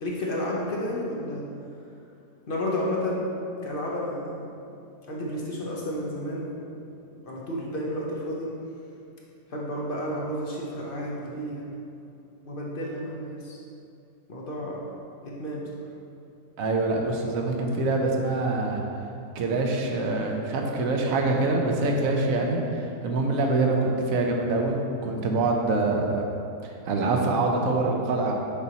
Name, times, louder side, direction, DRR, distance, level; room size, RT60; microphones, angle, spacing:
voice 1, 0.0-1.5 2.5-3.2 3.6-4.5 5.1-6.6 7.3-8.5 9.5-11.8 12.5-13.6 14.3-14.9 15.2-15.9, left 1 dB, 50° left, -3 dB, 0.7 m, -31 dB
voice 2, 16.6-18.8 19.3-24.8 25.0-26.2 26.6-28.3, right 2 dB, 65° right, 1 dB, 1.0 m, -25 dB
6.9 x 5.4 x 2.8 m, 2.6 s
omnidirectional pair, 1.8 m